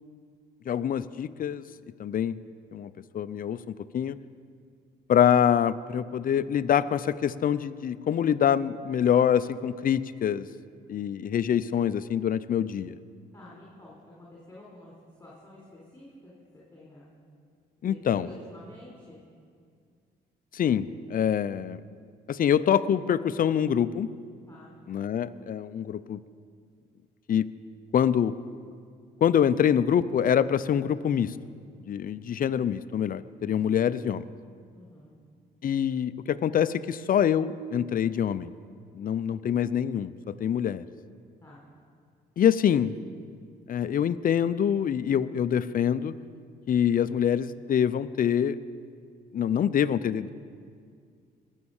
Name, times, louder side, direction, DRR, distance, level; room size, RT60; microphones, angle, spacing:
voice 1, 0.7-1.6 2.0-2.4 2.7-4.2 5.1-10.5 10.9-13.0 17.8-18.3 20.5-21.8 22.3-24.1 24.9-26.2 27.3-27.5 27.9-28.3 29.2-31.3 31.9-34.2 35.6-38.5 38.9-40.8 42.4-42.9 43.7-46.1 46.7-48.6 49.3-50.3, left 9 dB, 50° left, 14 dB, 0.6 m, -25 dB
voice 2, 13.3-17.1 17.8-19.2 24.5-24.7 34.7-35.1 41.4-41.6, left 1 dB, 15° left, -5 dB, 4.1 m, -49 dB
20.0 x 7.4 x 7.1 m, 2.2 s
cardioid pair, 75°, 18 cm